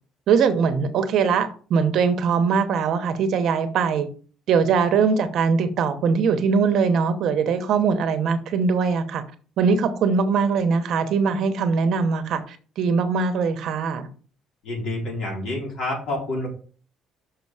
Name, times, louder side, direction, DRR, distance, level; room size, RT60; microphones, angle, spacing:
voice 1, 0.3-4.1 4.5-9.2 9.6-14.1, right 5 dB, 55° right, 0.9 m, -21 dB
voice 2, 14.6-16.5, left 2 dB, 55° left, 4.1 m, -28 dB
6.3 x 5.4 x 4.8 m
cardioid pair, 170°, 0 cm